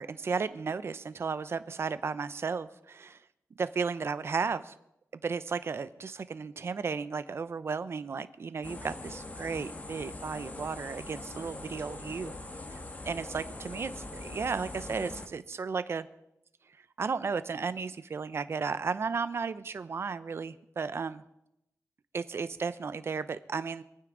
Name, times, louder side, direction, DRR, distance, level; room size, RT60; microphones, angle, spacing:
voice 1, 0.0-3.2 3.6-4.7 5.1-12.3 12.7-16.1 17.0-21.2 22.1-23.8, right 5 dB, 50° right, 14 dB, 0.7 m, -34 dB
sound 1, 8.6-15.3, left 2 dB, 30° left, 1.5 m, -42 dB
25.5 x 9.5 x 3.9 m, 0.82 s
wide cardioid pair, 135°, 6 cm